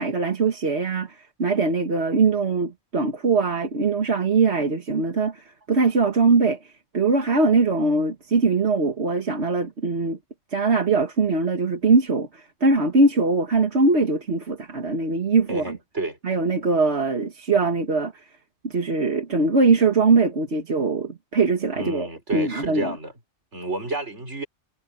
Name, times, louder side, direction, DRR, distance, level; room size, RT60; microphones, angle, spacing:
voice 1, 0.0-10.2 10.5-15.8 16.2-18.3 18.6-22.9, right 3 dB, 70° right, 1.9 m, -22 dB
voice 2, 15.5-16.2 21.7-23.1 23.5-24.5, right 2 dB, 90° right, 5.6 m, -30 dB
omnidirectional pair, 1.2 m